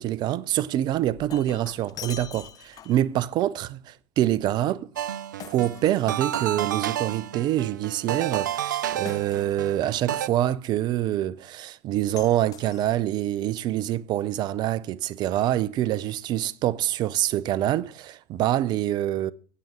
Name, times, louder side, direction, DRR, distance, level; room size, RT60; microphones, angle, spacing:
voice 1, 0.0-4.9 5.5-19.3, right 13 dB, 45° right, 0.7 m, -26 dB
Shatter, 0.9-3.1 5.4-6.7 9.0-9.8 12.2-13.3, left 10 dB, 40° left, 0.7 m, -44 dB
sound 1, 5.0-10.3, right 11 dB, 85° right, 0.4 m, -31 dB
8.9 x 8.5 x 8.1 m
hypercardioid pair, 85°, 10 cm